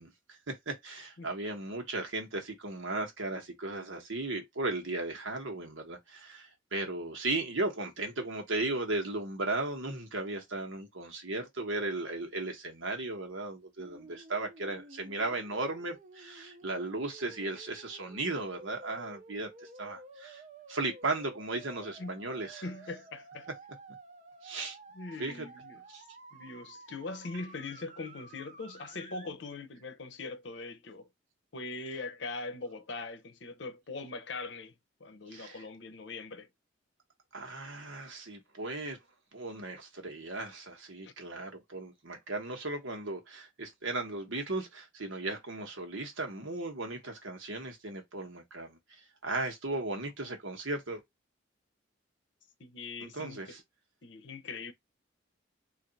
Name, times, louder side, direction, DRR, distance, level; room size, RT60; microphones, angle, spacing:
voice 1, 0.0-19.5 19.8-20.4 20.7-22.6 24.4-24.8 25.2-25.4 25.9-26.0 35.3-35.6 37.3-39.0 39.3-48.8 49.2-51.0 53.0-53.6, right 2 dB, 80° right, 1.2 m, -36 dB
sound 1, 13.8-29.3, right 3 dB, 40° right, 0.6 m, -52 dB
voice 2, 22.6-23.5 24.9-25.8 26.3-31.1 31.5-34.7 35.0-36.5 41.0-41.1 52.6-53.6 54.0-54.7, left 3 dB, 65° left, 0.7 m, -41 dB
3.3 x 2.6 x 3.9 m
head